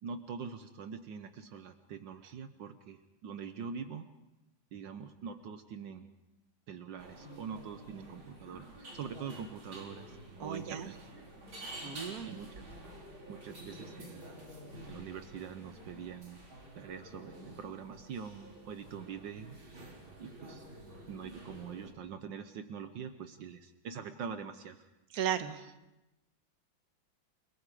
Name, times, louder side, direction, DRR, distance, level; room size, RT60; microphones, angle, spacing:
voice 1, 0.0-4.1 4.7-6.1 6.7-8.7 8.9-11.0 12.3-12.7 13.3-14.4 14.8-16.4 16.7-19.6 20.2-20.6 21.1-24.9, right 6 dB, 70° right, 9 dB, 1.6 m, -44 dB
sound 1, 7.0-21.9, right 1 dB, 85° right, 4.8 m, -49 dB
voice 2, 10.4-10.9 11.8-12.3 25.1-25.7, right 9 dB, 55° right, 8 dB, 1.6 m, -35 dB
29.5 x 19.0 x 4.9 m, 0.96 s
omnidirectional pair, 2.1 m